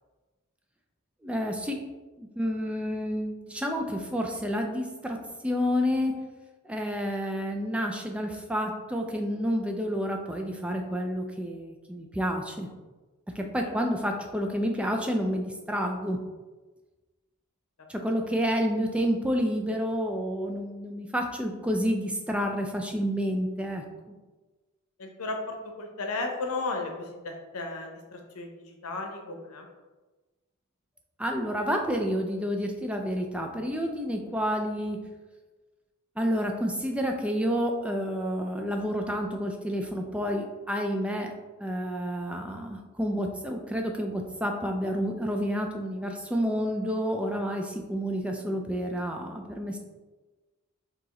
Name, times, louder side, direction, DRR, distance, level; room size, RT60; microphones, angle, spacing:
voice 1, 1.2-1.8 2.2-6.2 6.6-12.7 13.4-16.2 17.9-24.2 31.2-35.0 36.2-41.3 41.6-49.8, equal, 5° right, 2 dB, 0.3 m, -29 dB
voice 2, 25.0-29.7, left 3 dB, 85° left, 3 dB, 0.8 m, -35 dB
4.8 x 2.9 x 3.7 m, 1.2 s
head